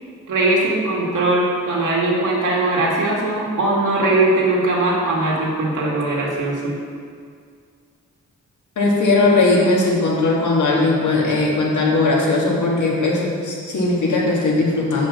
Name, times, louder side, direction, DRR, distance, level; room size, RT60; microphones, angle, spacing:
voice 1, 0.3-6.7, right 2 dB, 80° right, -3 dB, 1.9 m, -20 dB
voice 2, 8.8-15.1, left 2 dB, 75° left, -3 dB, 1.7 m, -18 dB
7.5 x 5.1 x 6.0 m, 2.1 s
wide cardioid pair, 120°, 31 cm